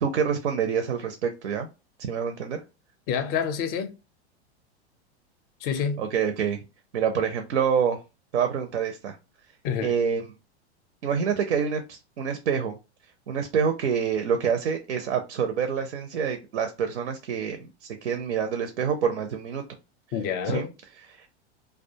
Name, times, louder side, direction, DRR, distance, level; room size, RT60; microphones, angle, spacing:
voice 1, 0.0-1.7 2.1-2.6 6.0-6.6 6.9-8.0 8.3-9.2 9.8-10.3 11.0-12.8 13.3-19.6 20.4-20.7 21.1-21.3, right 7 dB, 80° right, 0.6 m, -27 dB
voice 2, 3.1-3.9 5.6-6.0 9.6-9.9 20.1-20.7, left 7 dB, 30° left, 0.4 m, -27 dB
2.3 x 2.2 x 2.6 m
hypercardioid pair, 115°, 33 cm